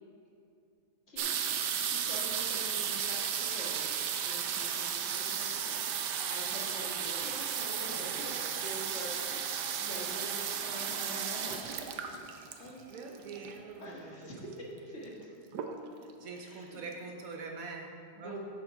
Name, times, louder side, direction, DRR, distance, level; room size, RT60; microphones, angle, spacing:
sound 1, 1.2-13.7 14.5-14.6 14.8-15.2 15.5-16.1 16.6-16.7 16.9-17.0, right 8 dB, 85° right, 1.3 m, -34 dB
voice 1, 1.9-3.9 4.2-8.3 8.6-11.9 12.6-13.2 13.8-15.3 16.3-16.8 18.1-18.4, equal, 45° left, -4 dB, 1.6 m, -45 dB
voice 2, 7.9-8.6 12.5-14.2 16.2-18.4, right 4 dB, 65° right, 2 dB, 1.1 m, -45 dB
7.8 x 6.7 x 5.5 m, 2.5 s
omnidirectional pair, 1.7 m